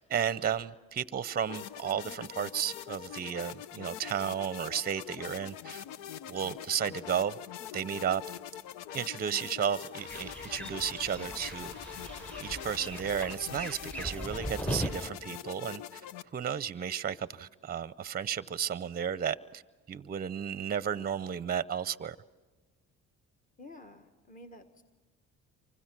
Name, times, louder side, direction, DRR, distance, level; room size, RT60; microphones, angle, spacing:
voice 1, 0.0-5.8 6.3-7.4 7.7-8.2 8.9-11.7 12.4-16.0 16.3-19.6 19.9-22.2, right 8 dB, 30° right, 0.6 m, -33 dB
sound 1, 1.5-16.2, left 11 dB, 85° left, 0.6 m, -44 dB
sound 2, 9.9-12.8, left 1 dB, 60° left, 2.2 m, -50 dB
sound 3, 10.1-15.1, right 1 dB, 5° left, 0.8 m, -39 dB
voice 2, 23.6-24.8, left 1 dB, 25° left, 1.4 m, -50 dB
27.5 x 24.5 x 6.1 m
supercardioid pair, 70°, 31 cm